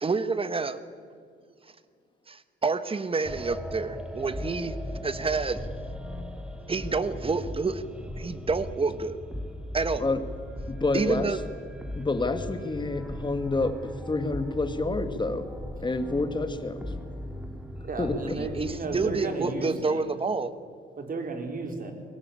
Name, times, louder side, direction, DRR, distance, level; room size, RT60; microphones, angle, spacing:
voice 1, 0.0-0.8 2.3-4.7 5.0-5.7 6.7-7.8 8.2-9.2 9.7-10.1 10.9-11.4 18.3-20.5, right 4 dB, 25° right, 12 dB, 1.5 m, -28 dB
sound 1, 3.2-19.2, left 1 dB, 5° right, 2.4 m, -38 dB
voice 2, 10.7-11.3 12.0-15.5 15.8-16.8 18.0-18.1, left 3 dB, 25° left, 8 dB, 2.2 m, -28 dB
voice 3, 17.8-20.0 21.0-21.9, right 3 dB, 45° right, 4 dB, 4.3 m, -33 dB
23.0 x 18.5 x 8.7 m, 2.1 s
cardioid pair, 90°, 20 cm